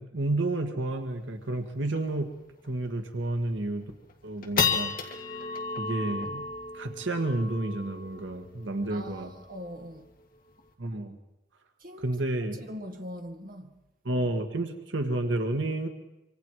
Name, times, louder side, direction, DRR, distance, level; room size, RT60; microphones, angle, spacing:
voice 1, 0.0-2.3 2.6-3.8 4.2-4.9 5.8-6.4 6.7-9.3 10.8-11.2 12.0-12.6 14.0-15.9, right 2 dB, 85° right, 1.8 m, -30 dB
sound 1, 1.1-1.2 1.4-1.5 1.9-2.2 2.6-2.7 3.3-3.7 4.1-10.7, left 5 dB, 50° left, 2.6 m, -34 dB
voice 2, 8.9-10.1 11.8-12.2 12.6-13.7, equal, 50° right, 2.0 m, -41 dB
26.0 x 25.5 x 4.9 m
head